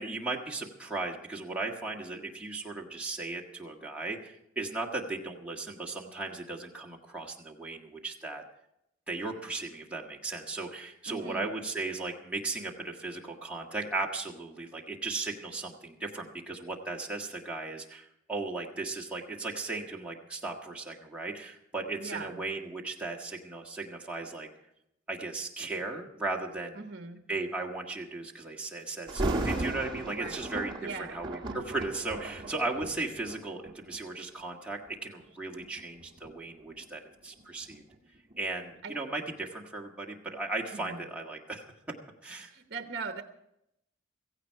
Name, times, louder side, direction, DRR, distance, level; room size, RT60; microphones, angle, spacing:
voice 1, 0.0-8.4 9.1-24.5 25.1-26.8 27.3-37.8 38.4-41.7 42.2-42.5, right 3 dB, 5° right, -2 dB, 1.6 m, -36 dB
voice 2, 11.1-11.5 22.0-22.4 26.7-27.2 30.1-30.4 30.8-31.2 38.8-39.0 40.7-41.0 42.5-43.2, right 4 dB, 55° right, 6 dB, 1.0 m, -40 dB
Thunder, 29.1-34.1 34.7-34.9 35.6-38.4 38.7-38.8, right 2 dB, 25° right, 1.4 m, -36 dB
16.5 x 15.5 x 4.7 m, 0.82 s
head